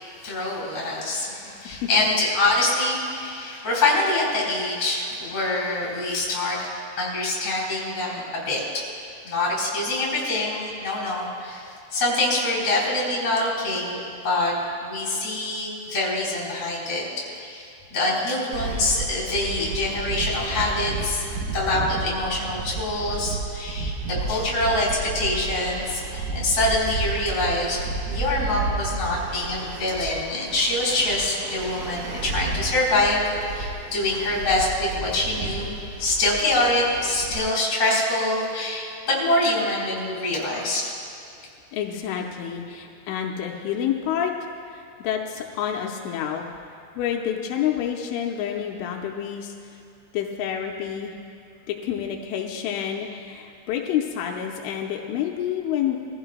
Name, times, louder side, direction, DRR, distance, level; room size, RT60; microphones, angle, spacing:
voice 1, 0.2-6.7 7.0-8.6 9.2-14.0 14.2-14.5 14.8-17.1 17.4-21.2 21.5-23.9 24.2-27.8 28.1-33.2 33.5-40.8, left 2 dB, 35° left, -5 dB, 4.8 m, -25 dB
sound 1, 18.5-37.4, right 3 dB, 70° right, 2.7 m, -32 dB
voice 2, 41.7-44.3 44.7-46.5 47.0-49.5 50.1-51.1 51.7-56.0, left 9 dB, 90° left, 1 dB, 3.2 m, -28 dB
22.5 x 15.0 x 2.2 m, 2.6 s
omnidirectional pair, 5.6 m